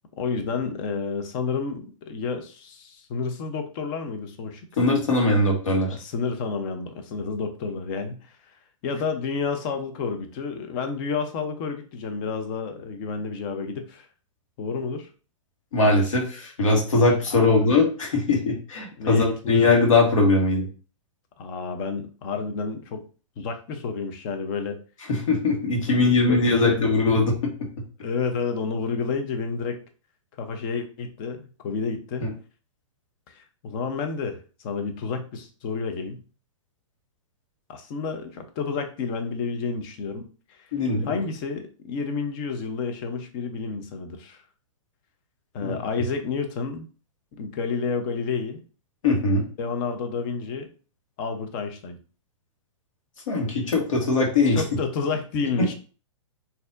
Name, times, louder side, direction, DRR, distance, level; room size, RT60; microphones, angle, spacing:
voice 1, 0.2-4.7 5.9-8.6 8.8-14.1 14.6-15.1 19.0-19.7 21.4-23.0 23.4-24.8 25.9-27.0 28.0-29.8 30.4-32.3 33.3-36.2 37.7-40.7 41.0-44.4 45.5-46.9 47.3-48.6 49.6-50.7 51.2-52.0 54.5-55.7, left 5 dB, 40° left, 6 dB, 0.7 m, -30 dB
voice 2, 4.8-5.9 15.7-20.7 25.1-27.5 32.2-32.3 40.7-41.2 45.6-45.7 49.0-49.4 53.3-54.6 55.6-55.7, left 3 dB, 75° left, 0 dB, 1.4 m, -21 dB
4.1 x 2.7 x 2.5 m, 0.37 s
hypercardioid pair, 130°, 17 cm